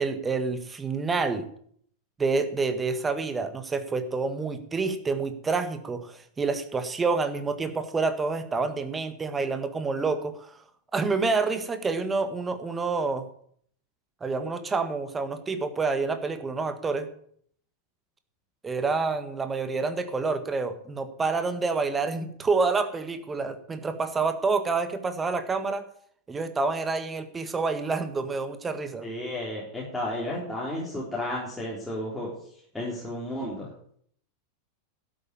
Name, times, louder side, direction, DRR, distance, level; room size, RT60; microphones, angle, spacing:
voice 1, 0.0-1.5 2.2-10.6 10.9-13.2 14.2-17.1 18.6-25.9 26.3-29.1, right 4 dB, 15° right, 10 dB, 1.6 m, -28 dB
voice 2, 29.0-32.3 32.7-33.7, left 1 dB, 5° left, -6 dB, 4.0 m, -32 dB
12.5 x 8.6 x 8.6 m, 0.63 s
figure-of-eight pair, 90°, 0 cm